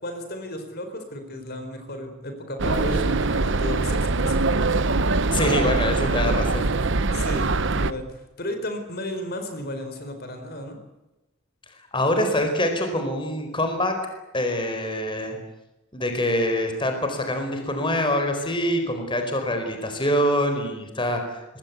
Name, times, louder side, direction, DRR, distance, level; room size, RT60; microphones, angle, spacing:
voice 1, 0.0-4.6 7.1-8.0 8.4-10.8, left 1 dB, 45° left, 6 dB, 4.7 m, -33 dB
sound 1, 2.6-7.9, right 3 dB, 55° right, 1.0 m, -23 dB
voice 2, 5.3-6.7 11.9-13.9 14.3-15.4 15.9-21.4, left 1 dB, 25° left, 5 dB, 4.6 m, -25 dB
26.0 x 21.5 x 8.4 m, 1.0 s
head